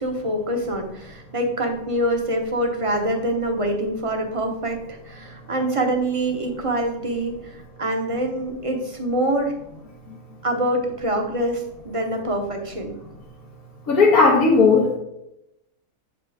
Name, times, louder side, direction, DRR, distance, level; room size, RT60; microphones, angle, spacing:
voice 1, 0.0-7.4 7.8-9.5 10.4-13.0, right 1 dB, 25° right, 3 dB, 0.9 m, -25 dB
voice 2, 13.9-14.9, left 4 dB, 85° left, -4 dB, 1.6 m, -15 dB
8.0 x 5.2 x 3.4 m, 0.84 s
omnidirectional pair, 1.5 m